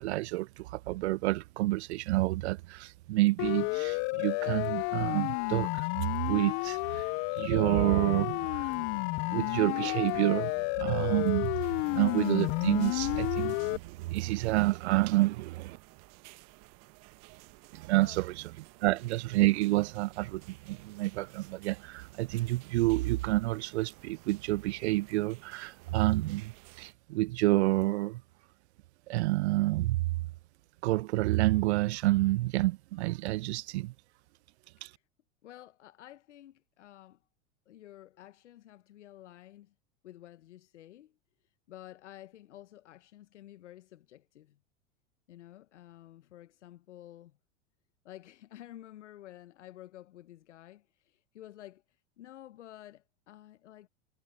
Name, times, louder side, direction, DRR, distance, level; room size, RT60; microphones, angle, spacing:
voice 1, 0.0-7.1 7.4-8.9 9.3-15.8 17.7-18.3 18.8-28.2 29.1-30.1 30.8-33.9 34.8-34.9, right 19 dB, 70° right, 0.5 m, -29 dB
Siren, 3.4-13.8, left 30 dB, 40° left, 0.4 m, -31 dB
sound 1, 7.0-12.3, left 1 dB, 5° left, 3.9 m, -66 dB
sound 2, 11.6-26.9, right 25 dB, 45° right, 1.1 m, -55 dB
voice 2, 17.8-18.2 18.7-18.8 34.8-35.0 35.4-37.2 37.7-39.7 40.0-41.2 41.4-44.6 45.3-47.4 48.0-53.9, left 13 dB, 80° left, 1.0 m, -51 dB
hypercardioid pair, 105°, 35 cm